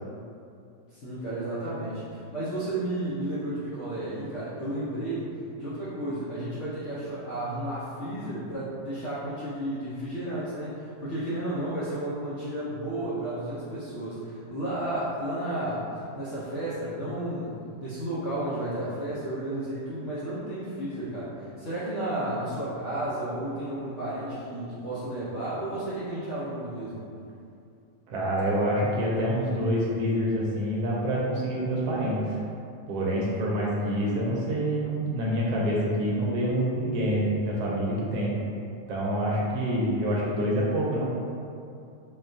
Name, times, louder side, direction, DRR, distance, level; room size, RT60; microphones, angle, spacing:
voice 1, 0.9-5.3 5.6-15.9 16.1-27.0, right 1 dB, 60° left, -11 dB, 0.8 m, -32 dB
voice 2, 28.1-32.4 32.9-38.3 38.9-41.1, equal, 70° right, -5 dB, 1.0 m, -26 dB
4.1 x 2.3 x 2.6 m, 2.6 s
omnidirectional pair, 1.8 m